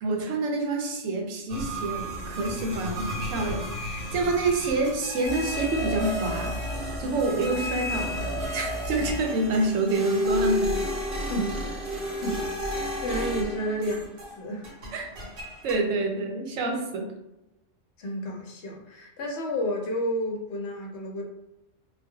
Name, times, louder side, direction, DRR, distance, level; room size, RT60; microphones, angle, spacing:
voice 1, 0.0-6.5 7.0-8.2 8.5-10.7 14.9-15.1 15.6-17.1, right 2 dB, 85° right, 2 dB, 1.0 m, -27 dB
sound 1, 1.5-14.4 14.6-15.8, equal, 55° right, 0.8 m, -31 dB
voice 2, 11.3-12.4 12.7-14.7 18.0-21.2, equal, 70° left, 1 dB, 0.8 m, -31 dB
2.2 x 2.1 x 3.5 m, 0.93 s
omnidirectional pair, 1.3 m